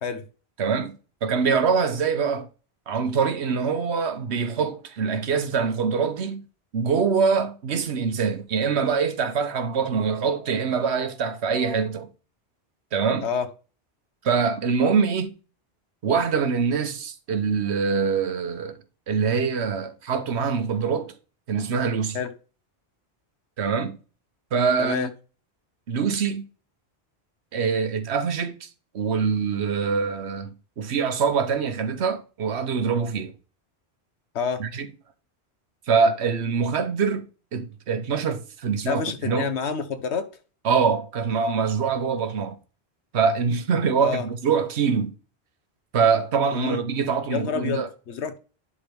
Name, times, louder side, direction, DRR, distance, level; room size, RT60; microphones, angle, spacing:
voice 1, 0.6-2.5 2.9-6.4 6.7-12.1 12.9-13.3 14.2-15.3 16.0-18.8 19.1-21.1 21.5-22.2 23.6-24.0 24.5-25.1 25.9-26.4 27.5-28.7 28.9-33.3 34.6-34.9 35.9-37.3 37.5-39.5 40.6-42.6 43.1-45.1 45.9-47.9, right 5 dB, 80° right, 1.2 m, -24 dB
voice 2, 24.8-25.1 34.3-34.6 38.8-40.3 44.0-44.3 46.5-46.8 47.3-48.4, left 6 dB, 90° left, 1.3 m, -28 dB
11.0 x 3.8 x 3.5 m
omnidirectional pair, 1.1 m